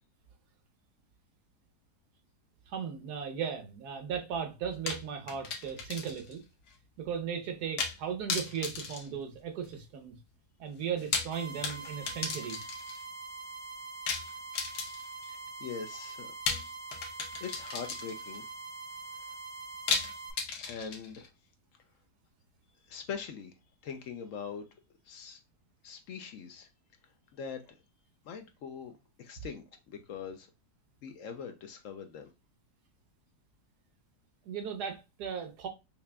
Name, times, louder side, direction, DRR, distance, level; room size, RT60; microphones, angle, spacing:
voice 1, 2.7-6.4 7.0-10.2 10.6-12.6 34.4-35.7, right 7 dB, 80° right, 1.4 m, -36 dB
sound 1, 4.9-6.4 6.7-6.8 7.8-8.0 8.3-9.8 10.9-13.0 14.1-15.2 16.5-18.4 19.9-21.3, left 5 dB, 80° left, 1.4 m, -35 dB
sound 2, 11.3-20.3, right 3 dB, 60° right, 1.0 m, -44 dB
voice 2, 15.3-16.4 17.4-18.4 20.6-21.3 22.9-23.5 23.8-24.7 25.1-25.4 25.8-26.7 27.3-27.7 28.2-30.5 31.0-32.3, left 6 dB, 65° left, 0.9 m, -42 dB
5.7 x 2.4 x 2.2 m
omnidirectional pair, 1.7 m